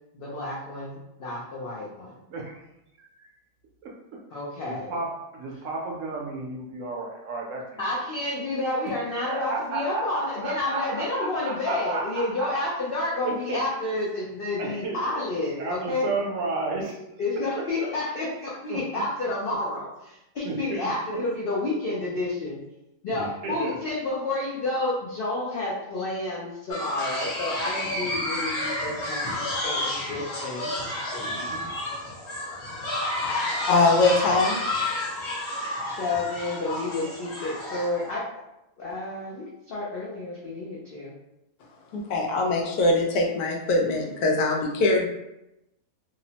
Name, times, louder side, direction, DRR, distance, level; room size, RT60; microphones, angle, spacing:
voice 1, 0.1-2.2 4.3-5.0 7.8-16.1 17.2-22.6 23.0-30.7 31.1-31.7 36.0-38.4 38.8-41.1, left 2 dB, 75° left, -5 dB, 0.5 m, -30 dB
voice 2, 4.7-7.6 9.1-12.5 13.2-13.6 14.6-15.0 15.6-17.0 17.8-17.9 18.7-19.3 20.4-20.9 23.1-23.7, right 3 dB, 70° right, -1 dB, 0.8 m, -33 dB
sound 1, 26.7-38.0, left 1 dB, 55° left, 1.0 m, -30 dB
voice 3, 33.2-34.6 41.9-45.1, left 2 dB, 90° left, 0 dB, 1.1 m, -22 dB
2.8 x 2.0 x 2.7 m, 0.89 s
omnidirectional pair, 1.6 m